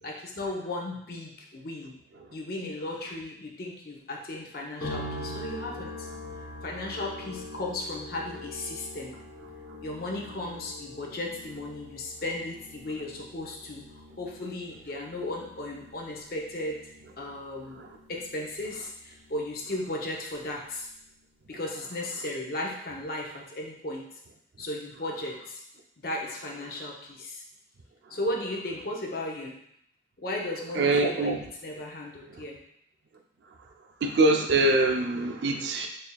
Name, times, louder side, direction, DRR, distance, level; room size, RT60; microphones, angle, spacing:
voice 1, 0.0-2.0 2.3-6.1 6.6-9.2 9.8-16.8 17.2-17.8 18.1-20.9 21.5-24.1 24.6-25.6 26.0-27.4 28.1-29.6 30.2-31.3 31.6-32.6, left 1 dB, 50° left, -1 dB, 0.6 m, -35 dB
sound 1, 4.8-20.1 20.3-21.2, left 1 dB, 90° left, 0.8 m, -44 dB
voice 2, 30.7-31.4 32.3-32.4 34.0-35.9, right 2 dB, 70° right, 4 dB, 0.5 m, -24 dB
4.1 x 3.4 x 2.2 m, 0.72 s
head